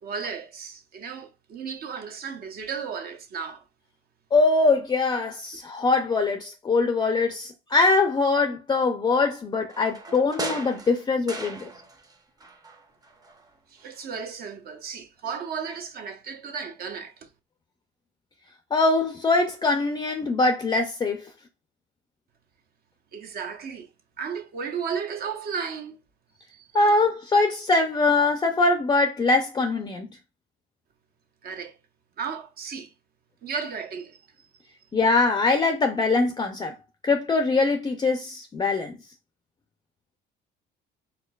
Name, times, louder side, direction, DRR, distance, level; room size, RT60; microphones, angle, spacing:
voice 1, 0.0-3.6 13.7-17.1 23.1-23.9 24.2-26.0 26.5-26.7 31.4-31.7 32.2-32.9 33.4-34.2, right 6 dB, 55° right, 0.8 m, -34 dB
voice 2, 4.3-11.7 18.7-21.2 26.7-30.1 34.9-36.7 37.0-39.0, left 3 dB, 20° left, 0.4 m, -22 dB
sound 1, 9.7-12.1 12.4-13.5 13.8-13.9, right 2 dB, 20° right, 0.6 m, -37 dB
4.4 x 3.9 x 2.3 m
cardioid pair, 115°, 19 cm